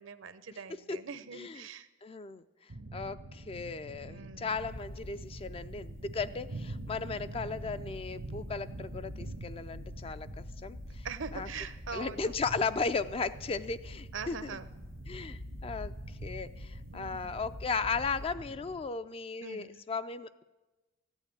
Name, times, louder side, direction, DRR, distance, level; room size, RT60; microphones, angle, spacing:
voice 1, 0.0-1.9 4.1-4.6 11.0-12.3 14.1-14.7 16.9-17.4 19.4-19.8, right 5 dB, 65° right, 14 dB, 0.7 m, -43 dB
voice 2, 1.3-1.7 2.0-2.4 2.9-11.1 11.3-11.5 11.9-14.5 15.1-20.4, left 4 dB, 25° left, 12 dB, 0.3 m, -36 dB
sound 1, 2.7-18.8, right 2 dB, 80° right, 1.1 m, -46 dB
sound 2, 4.6-18.3, left 1 dB, 80° left, 1.5 m, -47 dB
13.5 x 9.0 x 8.7 m, 1.1 s
head